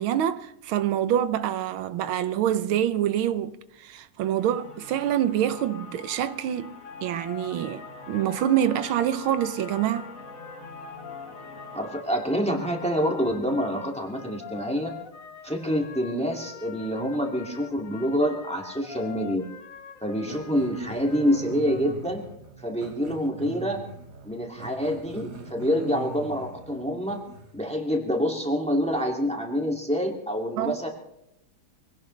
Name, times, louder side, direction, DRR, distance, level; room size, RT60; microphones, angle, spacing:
voice 1, 0.0-3.5 3.8-10.1 30.5-30.7, right 11 dB, 85° right, 1.6 m, -26 dB
sound 1, 4.4-14.1, left 3 dB, 80° left, 4.3 m, -45 dB
sound 2, 6.8-21.9, left 7 dB, 45° left, 1.4 m, -45 dB
voice 2, 11.7-14.9 15.4-19.4 20.0-22.2 22.6-23.8 24.2-27.2 27.5-30.9, equal, 5° left, 2.1 m, -27 dB
Growling, 20.2-27.6, right 3 dB, 55° right, 2.2 m, -42 dB
24.0 x 17.5 x 3.3 m
omnidirectional pair, 2.2 m